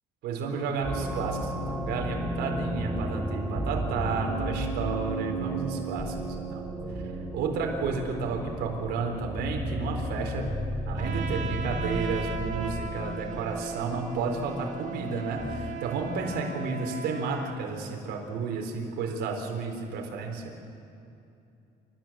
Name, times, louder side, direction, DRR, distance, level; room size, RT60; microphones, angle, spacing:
voice 1, 0.2-6.6 7.3-10.5 10.9-20.4, right 4 dB, 80° right, 1 dB, 4.3 m, -32 dB
sound 1, 0.8-15.9, right 1 dB, ahead, 4.8 m, -33 dB
Trumpet, 11.0-17.6, right 5 dB, 45° right, 1.6 m, -38 dB
30.0 x 14.5 x 7.7 m, 2.7 s
cardioid pair, 110°, 17 cm